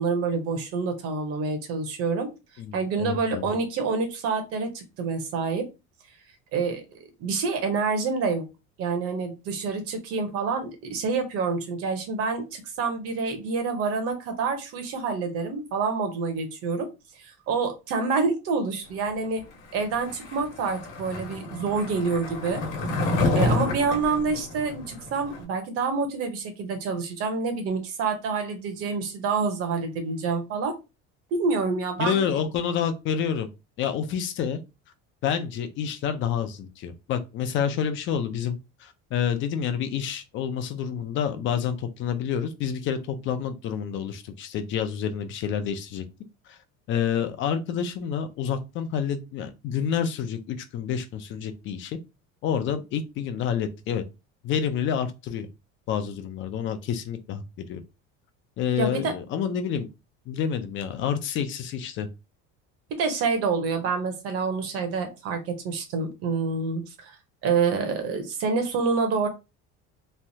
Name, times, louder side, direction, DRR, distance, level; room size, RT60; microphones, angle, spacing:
voice 1, 0.0-2.3 2.7-5.7 6.5-8.4 8.8-16.9 17.2-19.4 19.7-22.6 23.3-30.7 31.3-32.2 58.8-59.1 62.9-67.2 67.4-69.3, right 4 dB, 50° right, 0.9 m, -27 dB
voice 2, 2.6-3.5 32.0-33.5 33.8-34.6 35.2-46.0 46.5-46.6 46.9-52.0 52.4-54.0 54.4-55.5 55.9-57.4 57.7-57.8 58.6-59.9 60.3-62.1, left 8 dB, 40° left, 0.5 m, -28 dB
Skateboard, 20.0-25.4, left 2 dB, 65° left, 1.2 m, -28 dB
3.2 x 2.3 x 2.7 m
cardioid pair, 160°, 30 cm